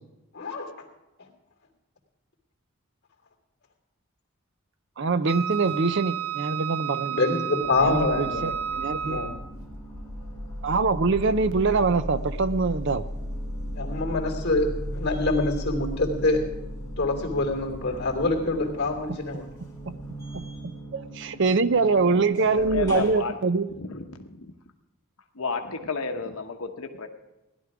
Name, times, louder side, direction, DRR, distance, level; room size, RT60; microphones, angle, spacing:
voice 1, 0.3-0.9 7.1-8.5 9.0-9.3 13.7-16.5 17.0-19.5, left 2 dB, 50° left, 3 dB, 2.7 m, -26 dB
voice 2, 5.0-7.2 7.8-9.2 10.6-13.0 19.9-20.0 20.3-23.7, right 4 dB, 55° right, 14 dB, 0.5 m, -24 dB
Wind instrument woodwind instrument, 5.3-9.5, right 10 dB, 75° right, 0.8 m, -32 dB
sound 1, 6.1-6.9 7.3-23.2, equal, 15° left, 3.6 m, -37 dB
voice 3, 22.3-23.4 23.7-24.5 25.3-27.1, left 4 dB, 75° left, 4 dB, 1.0 m, -32 dB
17.0 x 11.5 x 4.9 m, 0.99 s
head